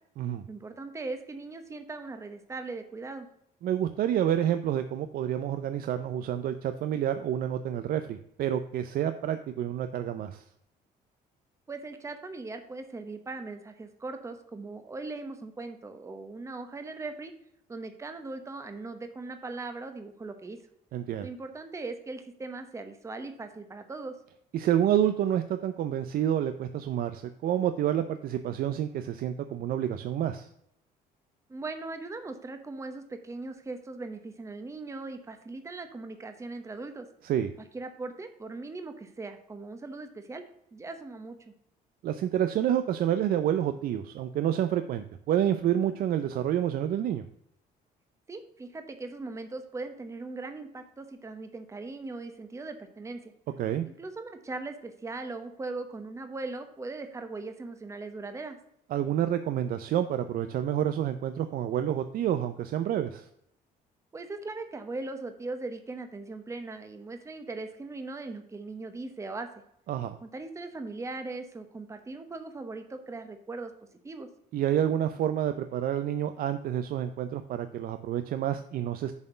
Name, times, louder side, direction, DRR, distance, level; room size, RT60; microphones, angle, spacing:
voice 1, 0.5-3.3 11.7-17.3 17.7-20.6 21.2-24.1 31.5-37.1 37.7-40.4 40.7-41.4 48.3-53.3 53.9-58.6 64.1-69.5 70.2-73.7 74.0-74.3, right 3 dB, 15° right, 7 dB, 0.9 m, -39 dB
voice 2, 3.6-10.4 20.9-21.3 24.5-30.5 37.2-37.5 42.0-47.2 53.6-53.9 58.9-63.3 69.9-70.2 74.5-79.1, right 10 dB, 60° right, 9 dB, 0.5 m, -28 dB
7.0 x 4.4 x 6.6 m, 0.74 s
cardioid pair, 110°, 17 cm